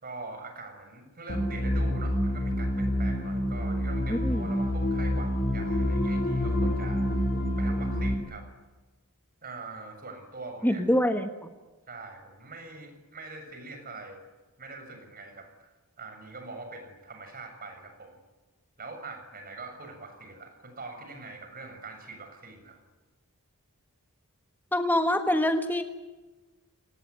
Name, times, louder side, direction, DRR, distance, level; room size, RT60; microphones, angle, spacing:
voice 1, 0.0-7.2 7.6-8.5 9.4-10.8 11.9-14.2 14.6-15.7 16.0-18.2 18.8-22.8, right 3 dB, 40° right, 6 dB, 6.9 m, -43 dB
sound 1, 1.3-8.1, equal, 45° left, 3.6 m, -27 dB
voice 2, 4.1-4.5 10.6-11.3 24.7-25.8, left 1 dB, 10° left, 6 dB, 1.4 m, -25 dB
29.5 x 19.5 x 9.7 m, 1.2 s
head